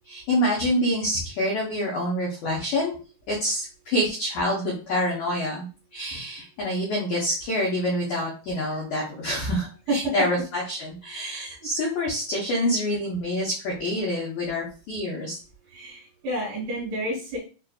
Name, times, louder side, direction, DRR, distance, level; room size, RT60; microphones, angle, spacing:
voice 1, 0.1-3.0 3.3-5.7 5.9-15.4, equal, 80° left, -3 dB, 1.7 m, -27 dB
voice 2, 15.7-17.4, right 1 dB, 65° right, -3 dB, 2.6 m, -29 dB
6.2 x 2.5 x 2.3 m, 0.36 s
omnidirectional pair, 4.6 m